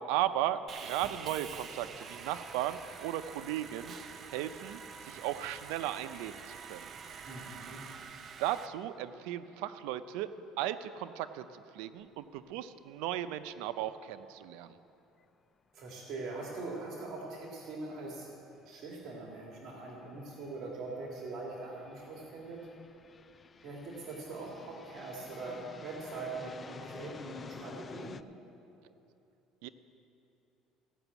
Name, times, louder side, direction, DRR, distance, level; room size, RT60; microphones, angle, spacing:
voice 1, 0.0-3.9 4.3-6.9 8.4-14.8 29.6-29.7, right 12 dB, 85° right, 12 dB, 0.5 m, -36 dB
Sawing, 0.7-8.7, right 6 dB, 40° right, 0.6 m, -47 dB
voice 2, 7.3-7.9 15.7-18.3 18.7-22.6 23.6-28.2, right 3 dB, 55° right, -2 dB, 2.1 m, -42 dB
sound 1, 12.1-12.2 12.5-12.6 16.6-16.7 17.8-18.0 18.6-28.2, left 5 dB, 25° left, 0.3 m, -51 dB
16.0 x 6.0 x 8.1 m, 2.8 s
cardioid pair, 130°, 0 cm